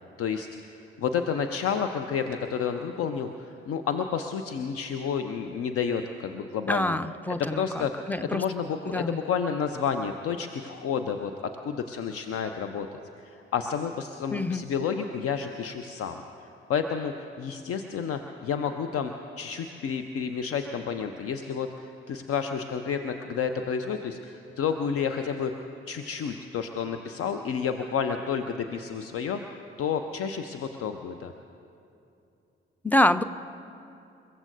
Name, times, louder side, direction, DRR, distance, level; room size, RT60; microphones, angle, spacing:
voice 1, 0.2-0.5 0.7-7.0 7.3-7.9 8.3-11.3 11.6-12.9 13.2-16.2 16.7-31.3, left 7 dB, 50° left, 7 dB, 0.8 m, -30 dB
voice 2, 6.7-8.4 8.9-9.2 14.3-14.7 32.8-33.2, left 1 dB, 5° left, 14 dB, 0.6 m, -26 dB
29.0 x 15.0 x 2.7 m, 2.7 s
figure-of-eight pair, 40°, 30 cm